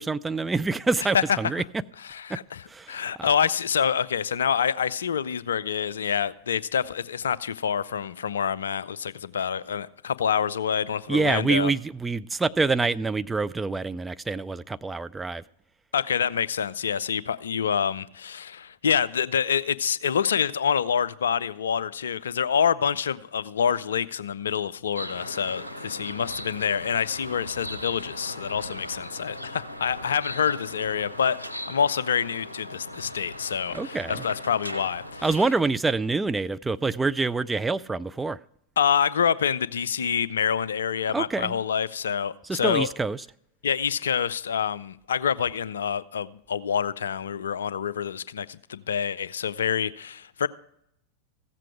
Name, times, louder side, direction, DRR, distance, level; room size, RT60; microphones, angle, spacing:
voice 1, 0.0-1.6 2.3-2.4 2.7-3.3 11.1-15.4 33.7-34.2 35.2-38.4 41.1-41.6 42.5-43.2, right 3 dB, 10° right, 0.3 m, -26 dB
voice 2, 2.1-11.7 15.9-31.4 31.7-35.3 38.8-42.9 43.6-50.5, left 7 dB, 65° left, 0.4 m, -27 dB
sound 1, 25.0-35.3, equal, 85° left, 0.8 m, -38 dB
15.0 x 7.5 x 4.8 m
figure-of-eight pair, 90°, 0 cm